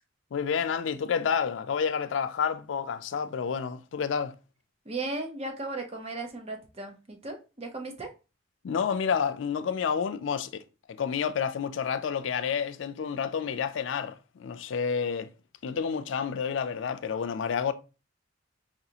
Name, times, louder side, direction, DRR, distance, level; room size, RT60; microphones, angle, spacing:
voice 1, 0.3-4.3 8.6-10.6 10.9-15.3 15.6-17.7, left 6 dB, 75° left, 0.4 m, -29 dB
voice 2, 4.9-8.1, right 2 dB, 35° right, 0.7 m, -36 dB
5.0 x 2.4 x 2.8 m
head